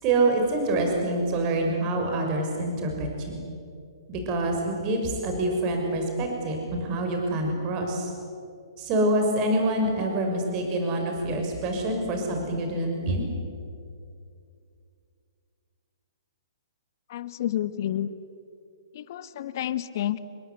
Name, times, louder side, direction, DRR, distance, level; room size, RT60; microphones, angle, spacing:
voice 1, 0.0-3.4 4.1-8.1 8.8-13.2, right 2 dB, 35° right, 3 dB, 6.2 m, -26 dB
voice 2, 17.1-18.1 18.9-20.2, left 12 dB, 55° left, 13 dB, 1.4 m, -30 dB
29.5 x 21.5 x 8.4 m, 2.4 s
hypercardioid pair, 125°, 2 cm